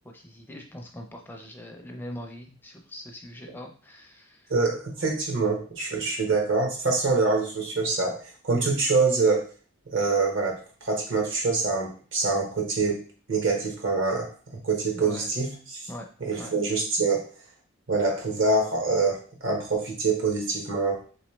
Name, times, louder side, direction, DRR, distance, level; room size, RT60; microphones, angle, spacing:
voice 1, 0.1-4.4 14.9-15.3 15.9-16.1 16.4-16.5, left 1 dB, 10° left, 2 dB, 0.4 m, -41 dB
voice 2, 4.5-9.5 9.9-13.0 13.3-14.3 14.6-15.8 16.2-17.3 17.9-21.0, right 3 dB, 65° right, 0 dB, 1.1 m, -25 dB
3.3 x 3.1 x 3.1 m, 0.39 s
head